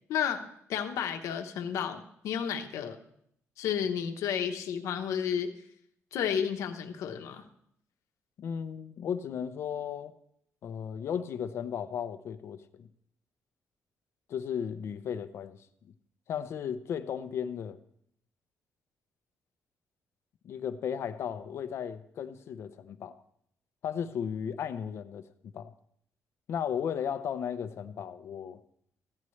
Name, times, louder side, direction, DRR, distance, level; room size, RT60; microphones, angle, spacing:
voice 1, 0.1-0.4 0.7-3.0 3.6-5.5 6.1-7.4, left 8 dB, 85° left, 0.9 m, -32 dB
voice 2, 8.4-10.1 10.6-12.9 14.3-15.9 16.3-17.8 20.4-23.1 23.8-25.7 26.5-28.6, left 8 dB, 55° left, 0.6 m, -35 dB
15.0 x 9.7 x 3.2 m
cardioid pair, 155°, 5 cm